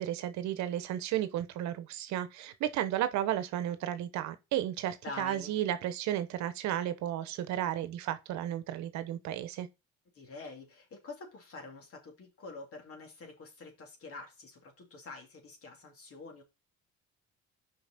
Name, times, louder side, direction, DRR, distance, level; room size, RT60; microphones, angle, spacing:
voice 1, 0.0-9.7, right 12 dB, 75° right, 1.0 m, -33 dB
voice 2, 5.0-5.6 10.1-16.4, left 3 dB, 50° left, 2.8 m, -46 dB
5.8 x 5.2 x 5.2 m
supercardioid pair, 80°, 29 cm